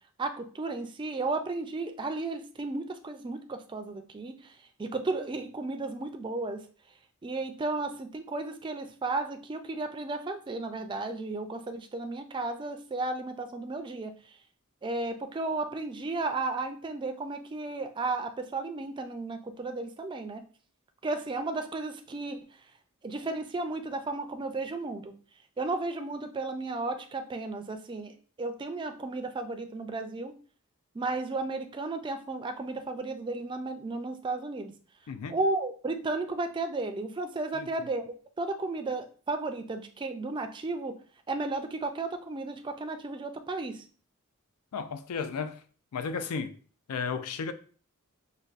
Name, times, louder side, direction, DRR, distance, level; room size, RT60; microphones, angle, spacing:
voice 1, 0.2-6.6 7.2-14.4 14.8-20.4 21.0-22.4 23.0-25.1 25.6-28.1 28.4-30.4 30.9-34.7 35.3-38.0 38.4-40.9 41.3-43.8, right 3 dB, 20° right, 0.3 m, -34 dB
voice 2, 44.7-45.6 45.9-46.6 46.9-47.5, left 5 dB, 85° left, 0.4 m, -33 dB
5.2 x 2.2 x 2.4 m
head